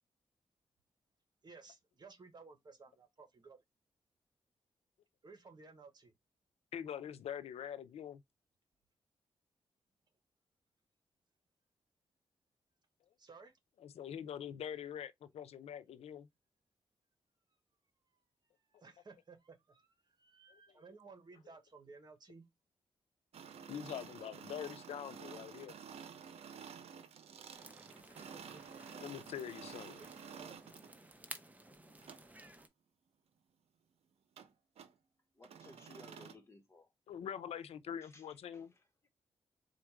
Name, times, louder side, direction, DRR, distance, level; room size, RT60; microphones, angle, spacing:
voice 1, 1.4-3.6 5.2-6.1 13.2-13.6 18.6-22.5 28.0-29.0 29.9-30.1 30.3-30.7 31.9-32.2, right 4 dB, 45° right, 1.2 m, -57 dB
voice 2, 6.7-8.2 13.8-16.3 20.5-20.6 23.7-25.7 29.0-30.0 37.1-38.7, left 9 dB, 90° left, 0.5 m, -44 dB
sound 1, 23.3-30.9 32.0-32.2 34.4-34.5 34.8-34.9 35.4-36.3, right 7 dB, 80° right, 0.7 m, -51 dB
sound 2, 27.5-32.7, right 2 dB, 15° right, 0.8 m, -54 dB
voice 3, 35.3-36.9 38.0-39.1, left 2 dB, 25° left, 1.2 m, -59 dB
4.3 x 2.4 x 4.6 m
cardioid pair, 100°, 10 cm